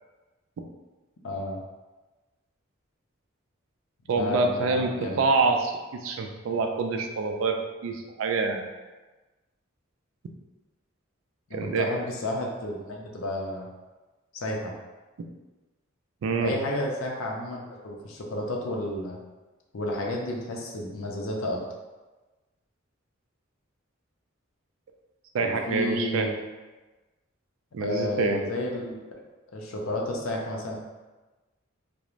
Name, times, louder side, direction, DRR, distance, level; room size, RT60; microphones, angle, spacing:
voice 1, 1.2-1.6 4.1-5.2 11.5-13.7 14.3-14.7 16.4-19.2 19.7-21.6 25.4-26.3 27.8-29.0 29.5-30.8, left 1 dB, 85° left, 0 dB, 0.5 m, -31 dB
voice 2, 4.1-4.9 5.2-8.6 11.5-11.9 16.2-16.5 25.3-26.3 27.7-28.4, right 4 dB, 75° right, 4 dB, 0.3 m, -26 dB
2.4 x 2.0 x 3.0 m, 1.2 s
head